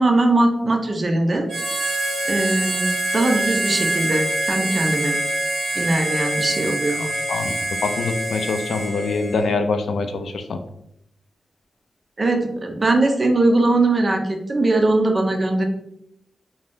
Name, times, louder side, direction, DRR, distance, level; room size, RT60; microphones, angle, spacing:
voice 1, 0.0-1.5 2.2-5.2 5.8-7.0 12.2-15.6, right 2 dB, 30° right, 4 dB, 0.4 m, -20 dB
Harmonica, 1.5-9.5, right 1 dB, 70° right, 1.0 m, -25 dB
voice 2, 7.0-7.5 7.8-10.6, left 4 dB, 85° left, 7 dB, 0.3 m, -24 dB
2.5 x 2.2 x 3.4 m, 0.75 s
wide cardioid pair, 145°, 0 cm